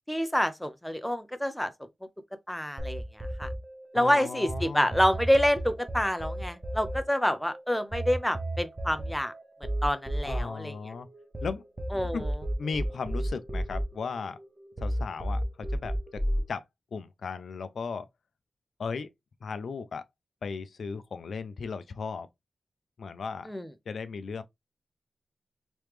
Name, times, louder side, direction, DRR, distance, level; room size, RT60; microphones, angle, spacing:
voice 1, 0.1-1.7 2.5-3.0 3.4-3.5 3.9-9.3 9.8-10.7 11.9-12.3 23.5-23.7, equal, 5° left, 0.4 m, -27 dB
sound 1, 2.8-4.6 4.9-11.5 11.8-14.5 14.8-16.4, right 1 dB, 15° right, 0.9 m, -32 dB
voice 2, 3.9-5.0 10.2-11.1 11.4-11.6 12.0-12.3 12.6-14.4 14.8-16.2 16.5-16.6 16.9-18.1 18.8-19.1 19.4-20.0 20.4-22.3 23.0-23.5 23.9-24.4, left 5 dB, 75° left, 0.4 m, -36 dB
3.3 x 2.9 x 3.2 m
wide cardioid pair, 135°, 0 cm